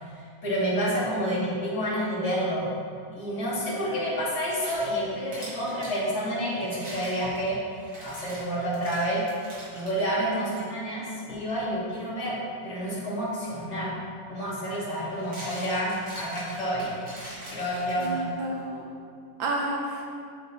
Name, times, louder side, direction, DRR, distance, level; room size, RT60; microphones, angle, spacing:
voice 1, 0.4-2.7 3.2-7.6 8.0-9.3 9.7-14.0 14.3-17.0 17.4-18.3, equal, 35° left, -7 dB, 1.9 m, -29 dB
sound 1, 4.3-6.0 6.6-10.0 10.5-10.6 11.3-11.5 13.6-13.7 14.9-18.4, equal, 45° right, 2.4 m, -43 dB
voice 2, 10.2-10.6 18.0-18.9 19.4-20.1, right 2 dB, 75° right, -1 dB, 1.5 m, -31 dB
8.1 x 6.3 x 3.0 m, 2.4 s
omnidirectional pair, 2.3 m